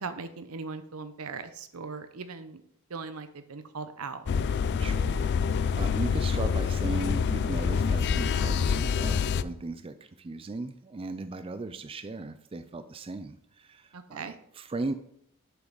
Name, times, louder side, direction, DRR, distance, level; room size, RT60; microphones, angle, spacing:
voice 1, 0.0-2.6 2.9-4.2 13.9-14.3, right 4 dB, 80° right, 10 dB, 0.8 m, -39 dB
sound 1, 4.3-9.4, left 6 dB, 50° left, 0.3 m, -26 dB
voice 2, 4.7-14.9, right 3 dB, 25° right, 9 dB, 0.4 m, -37 dB
7.8 x 5.9 x 4.0 m, 0.69 s
head